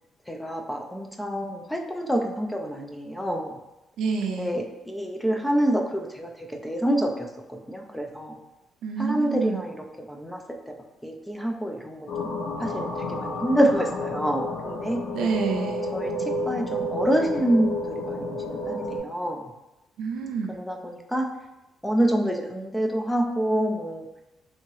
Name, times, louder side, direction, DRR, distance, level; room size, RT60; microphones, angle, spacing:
voice 1, 0.3-3.6 4.3-8.4 9.0-9.8 10.1-10.4 10.7-10.8 11.0-15.0 15.9-16.1 16.5-19.5 20.5-21.3 21.8-24.1, right 1 dB, 5° left, 2 dB, 0.3 m, -27 dB
voice 2, 4.0-4.5 8.8-9.7 15.1-15.8 20.0-20.5, right 5 dB, 75° right, 4 dB, 0.4 m, -28 dB
sound 1, 12.1-19.0, left 1 dB, 80° left, 0.8 m, -31 dB
2.8 x 2.7 x 3.0 m, 0.94 s
cardioid pair, 145°, 0 cm